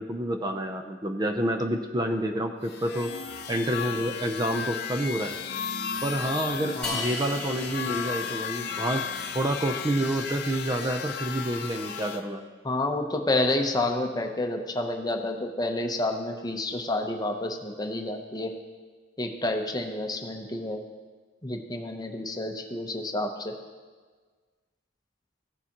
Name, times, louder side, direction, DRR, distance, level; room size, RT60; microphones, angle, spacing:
voice 1, 0.0-3.1 3.5-5.3 6.0-9.0 9.3-12.4, right 1 dB, 20° right, 5 dB, 0.5 m, -28 dB
sound 1, 2.6-12.2, left 7 dB, 60° left, 0.7 m, -34 dB
voice 2, 6.8-7.1 12.6-18.5 19.2-20.8 21.4-23.5, left 2 dB, 20° left, 4 dB, 0.7 m, -29 dB
sound 2, 6.8-9.1, left 2 dB, 5° left, 2.1 m, -37 dB
15.5 x 6.7 x 2.9 m, 1.4 s
head